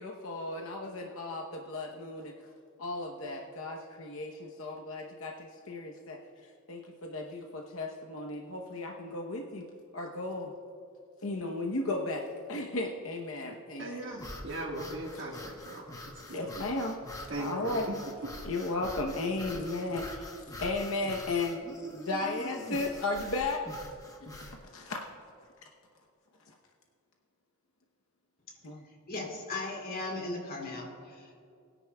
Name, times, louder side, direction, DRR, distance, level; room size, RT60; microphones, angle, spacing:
voice 1, 0.0-2.3 2.8-6.2 6.7-9.6 9.9-10.5 11.2-14.2 15.1-15.4 16.3-17.0 17.4-17.9 18.5-20.3 20.6-21.6 21.9-23.6 24.4-25.0 28.6-28.8, left 2 dB, 70° left, 1 dB, 0.9 m, -35 dB
voice 2, 13.8-15.8 16.3-16.4 17.3-17.9, right 1 dB, 60° right, -4 dB, 1.6 m, -38 dB
sound 1, 14.1-24.6, left 1 dB, 15° left, 1.1 m, -45 dB
voice 3, 29.1-31.4, left 2 dB, 45° left, -1 dB, 2.4 m, -37 dB
22.0 x 10.0 x 2.3 m, 2.5 s
head